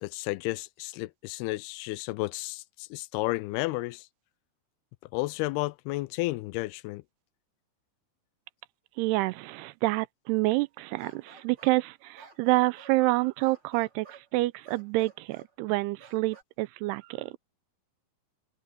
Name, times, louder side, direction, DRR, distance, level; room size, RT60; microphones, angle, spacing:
voice 1, 0.0-4.1 5.1-7.0, left 20 dB, 85° left, 2.5 m, -32 dB
voice 2, 9.0-17.4, right 20 dB, 90° right, 2.7 m, -28 dB
sound 1, 11.0-11.8 12.2-13.0 13.4-14.3 14.6-15.5 16.0-16.4, right 5 dB, 30° right, 5.0 m, -52 dB
omnidirectional pair, 4.6 m